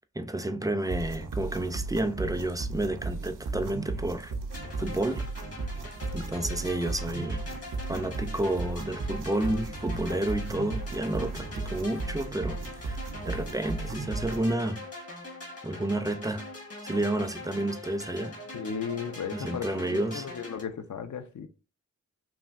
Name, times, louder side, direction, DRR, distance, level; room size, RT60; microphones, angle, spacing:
voice 1, 0.2-4.3 4.8-5.2 6.1-7.4 7.9-14.8 15.6-16.5 16.8-18.4 19.3-20.3, right 1 dB, 10° right, 0.3 m, -30 dB
sound 1, 0.9-14.5, right 3 dB, 80° right, 0.5 m, -35 dB
sound 2, 4.5-20.6, left 2 dB, 50° left, 1.2 m, -43 dB
voice 2, 18.5-21.5, left 6 dB, 70° left, 0.5 m, -35 dB
3.2 x 2.5 x 2.3 m
wide cardioid pair, 60°, 31 cm